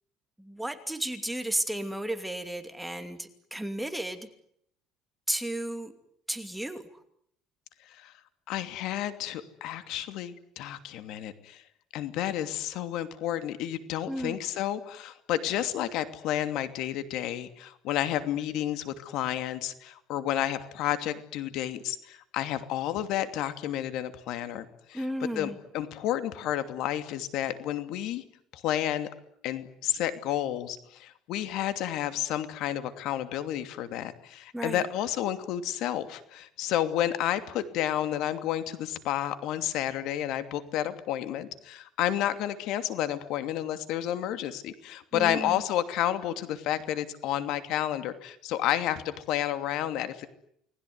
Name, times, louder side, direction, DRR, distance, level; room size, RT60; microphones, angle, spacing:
voice 1, 0.4-4.3 5.3-5.9 6.3-6.8 14.1-14.4 24.9-25.6 34.5-34.8 45.1-45.6, right 1 dB, 5° right, 7 dB, 2.6 m, -33 dB
voice 2, 8.5-11.6 11.9-25.0 25.4-28.2 28.5-29.1 29.4-50.3, left 12 dB, 65° left, 10 dB, 2.8 m, -31 dB
30.0 x 20.5 x 9.6 m, 0.71 s
cardioid pair, 135°, 0 cm